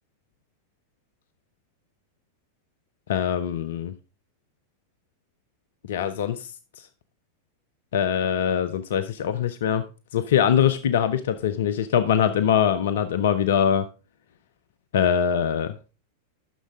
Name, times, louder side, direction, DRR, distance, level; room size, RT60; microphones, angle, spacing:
voice 1, 3.1-3.9 5.9-6.5 7.9-9.8 10.1-13.8 14.9-15.7, left 8 dB, 60° left, 10 dB, 0.5 m, -22 dB
10.0 x 6.3 x 3.5 m, 0.33 s
figure-of-eight pair, 90°, 0 cm